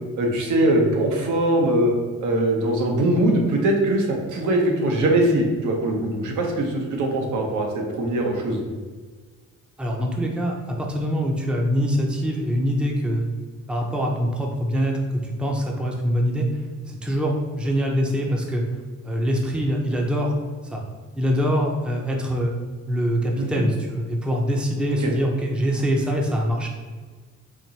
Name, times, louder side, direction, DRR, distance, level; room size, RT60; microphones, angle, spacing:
voice 1, 0.2-1.9 2.2-8.6 23.4-23.6 24.9-25.1, right 1 dB, 75° right, 1 dB, 0.9 m, -21 dB
voice 2, 9.8-13.4 13.7-16.5 16.9-18.6 19.0-20.3 20.6-20.8 21.2-22.6 22.9-26.7, equal, 5° right, 0 dB, 0.5 m, -24 dB
4.6 x 2.6 x 2.8 m, 1.4 s
cardioid pair, 90°, 30 cm